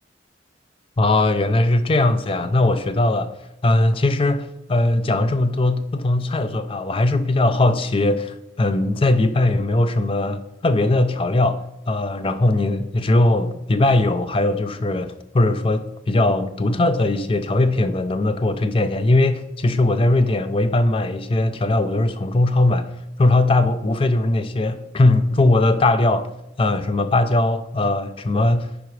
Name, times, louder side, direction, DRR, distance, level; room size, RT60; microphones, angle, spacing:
voice 1, 1.0-3.3 3.6-22.9 23.2-26.3 26.6-28.7, left 2 dB, 30° left, 0.4 m, -19 dB
10.0 x 4.9 x 3.2 m
head